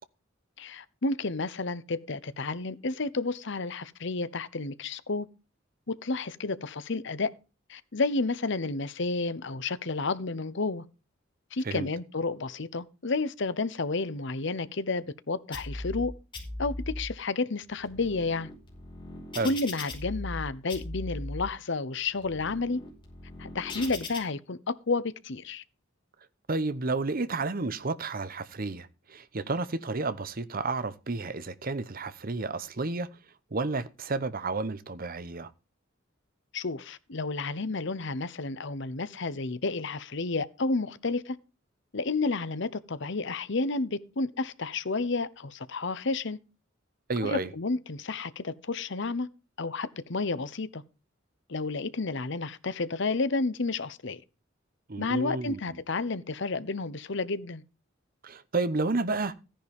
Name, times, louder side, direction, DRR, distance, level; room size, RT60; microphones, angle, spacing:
voice 1, 0.6-5.3 5.9-7.3 7.7-10.8 11.5-16.1 16.6-18.5 19.4-22.8 23.4-25.6 36.5-41.4 41.9-46.4 47.2-49.3 49.6-50.8 51.5-54.2 55.0-57.6, left 3 dB, 65° left, 0.9 m, -31 dB
sound 1, 15.5-16.0 16.3-17.0 17.6-20.4 20.7-21.4 22.0-24.2, left 2 dB, 25° left, 4.9 m, -39 dB
voice 2, 26.5-33.1 33.5-35.5 47.1-47.5 54.9-55.6 58.2-59.3, right 3 dB, 45° right, 0.9 m, -31 dB
14.5 x 10.0 x 3.6 m
head